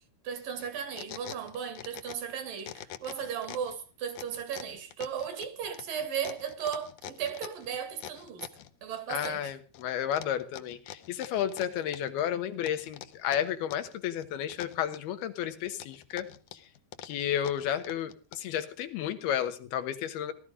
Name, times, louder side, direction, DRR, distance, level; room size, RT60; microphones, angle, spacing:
voice 1, 0.2-8.5 8.8-9.5, right 8 dB, 65° right, 3.6 m, -36 dB
sound 1, 0.6-2.3 2.6-3.7 4.1-8.7 9.2-9.8 10.1-12.2 12.6-13.9 14.2-15.2 15.7-18.6, left 11 dB, 70° left, 2.0 m, -45 dB
voice 2, 9.1-16.6 17.0-20.3, left 10 dB, 85° left, 3.3 m, -32 dB
17.5 x 12.5 x 5.0 m
omnidirectional pair, 4.3 m